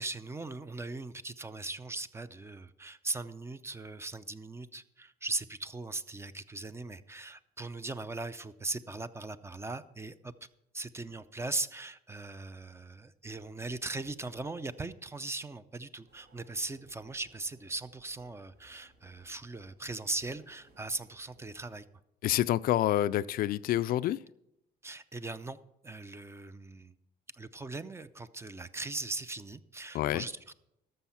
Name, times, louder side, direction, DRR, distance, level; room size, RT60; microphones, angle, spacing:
voice 1, 0.0-10.3 10.7-21.8 24.8-25.6 25.8-26.9 27.3-30.5, right 2 dB, 15° right, 13 dB, 0.5 m, -39 dB
sound 1, 16.1-21.8, right 2 dB, 75° right, 2.7 m, -65 dB
voice 2, 22.2-24.2 29.9-30.2, left 13 dB, 60° left, 18 dB, 0.4 m, -28 dB
13.5 x 6.3 x 5.7 m, 0.83 s
cardioid pair, 110°, 17 cm